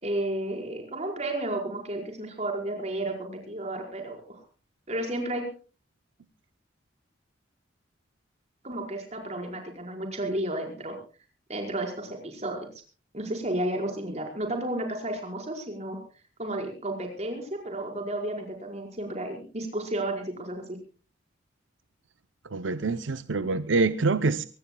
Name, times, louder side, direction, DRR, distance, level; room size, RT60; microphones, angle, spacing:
voice 1, 0.0-4.4 4.9-5.5 8.6-11.0 11.5-12.7 13.1-16.0 16.4-20.8, right 1 dB, 35° right, 3 dB, 5.0 m, -32 dB
voice 2, 22.4-24.4, right 3 dB, 85° right, 12 dB, 0.7 m, -26 dB
24.0 x 19.0 x 2.3 m, 0.35 s
head